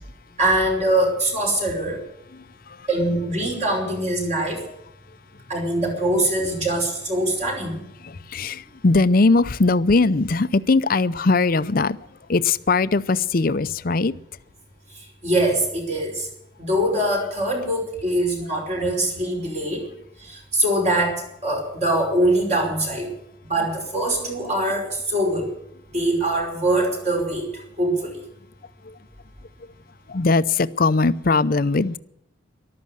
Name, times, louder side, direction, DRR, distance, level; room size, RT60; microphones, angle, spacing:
voice 1, 0.4-2.0 2.9-4.6 5.5-7.8 15.2-16.3 16.6-19.8 20.5-23.1 23.4-25.5 25.9-27.5 27.8-28.2, right 1 dB, 35° right, 1 dB, 5.3 m, -23 dB
voice 2, 2.3-2.9 8.0-12.0 12.3-14.1 28.8-28.9 30.1-32.0, left 3 dB, 50° left, 15 dB, 0.6 m, -20 dB
14.0 x 12.5 x 8.0 m, 0.78 s
head